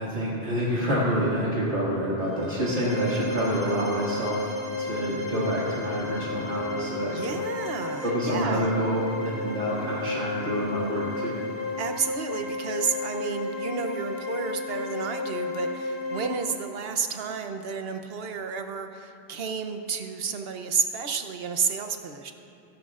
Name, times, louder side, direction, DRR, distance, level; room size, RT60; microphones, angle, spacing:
voice 1, 0.0-4.5 4.8-7.4 8.0-11.3, equal, 85° right, -8 dB, 2.4 m, -27 dB
sound 1, 2.2-16.3, left 3 dB, 45° right, 3.5 m, -33 dB
voice 2, 7.1-8.7 11.8-22.3, right 5 dB, 65° right, 6 dB, 1.0 m, -31 dB
16.0 x 16.0 x 2.5 m, 2.6 s
omnidirectional pair, 1.1 m